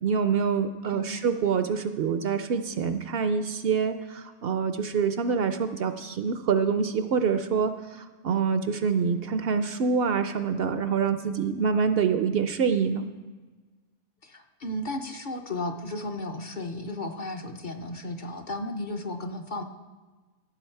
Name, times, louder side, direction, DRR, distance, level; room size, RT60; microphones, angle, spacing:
voice 1, 0.0-13.0, right 6 dB, 65° right, 10 dB, 0.7 m, -26 dB
voice 2, 0.9-1.2 14.2-19.6, left 1 dB, 50° left, 5 dB, 0.7 m, -34 dB
15.0 x 6.9 x 4.5 m, 1.3 s
omnidirectional pair, 1.2 m